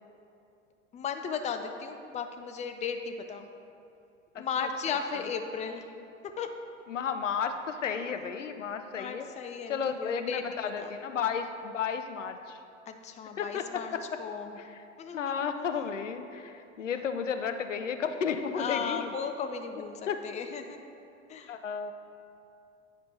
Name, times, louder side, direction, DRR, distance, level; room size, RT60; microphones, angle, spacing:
voice 1, 0.9-3.5 4.3-5.9 6.4-6.5 8.9-10.9 12.9-13.9 14.2-14.6 15.0-15.3 18.5-20.8 21.3-21.5, left 6 dB, 20° left, 6 dB, 0.5 m, -36 dB
voice 2, 4.3-5.2 6.9-9.3 9.7-12.6 13.4-14.0 14.6-14.8 15.1-19.1 20.1-20.2 21.5-21.9, left 7 dB, 80° left, 8 dB, 0.6 m, -33 dB
9.6 x 5.1 x 4.2 m, 2.6 s
figure-of-eight pair, 80°, 37 cm